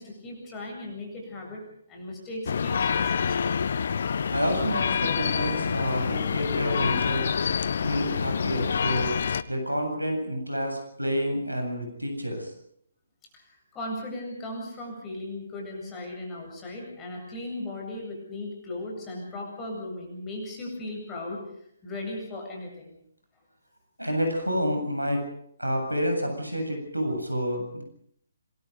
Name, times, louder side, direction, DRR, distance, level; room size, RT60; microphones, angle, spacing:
voice 1, 0.0-1.6 1.9-3.6 13.3-21.4 21.8-23.0, left 1 dB, 15° left, -1 dB, 8.0 m, -37 dB
sound 1, 2.5-9.4, left 6 dB, 50° left, 0.9 m, -27 dB
voice 2, 4.3-7.3 7.8-9.2 9.5-12.5 24.0-25.2 25.6-27.8, equal, 90° right, 4 dB, 8.0 m, -29 dB
27.0 x 22.5 x 5.4 m, 0.70 s
figure-of-eight pair, 135°, 0 cm